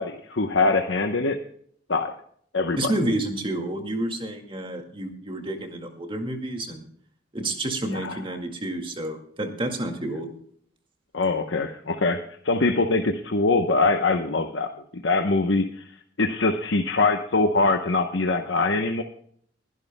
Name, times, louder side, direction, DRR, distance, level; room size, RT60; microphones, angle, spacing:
voice 1, 0.0-1.4 1.9-2.1 2.5-2.9 7.9-8.2 11.1-14.7 14.9-15.8 16.2-19.0, left 3 dB, 90° left, 5 dB, 0.9 m, -23 dB
voice 2, 2.8-6.8 7.3-10.3, right 1 dB, 30° right, 4 dB, 2.0 m, -29 dB
23.5 x 11.5 x 2.2 m, 0.62 s
head